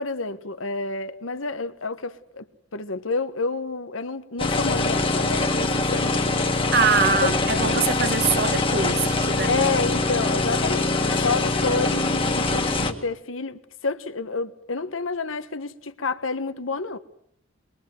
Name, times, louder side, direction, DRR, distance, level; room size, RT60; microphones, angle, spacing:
voice 1, 0.0-2.4 2.7-6.4 7.2-7.3 9.5-17.0, left 3 dB, 90° left, 1.5 m, -29 dB
sound 1, 4.4-12.9, left 2 dB, 25° left, 2.0 m, -23 dB
voice 2, 6.7-9.6, right 5 dB, 50° right, 1.3 m, -23 dB
23.5 x 22.5 x 7.8 m
head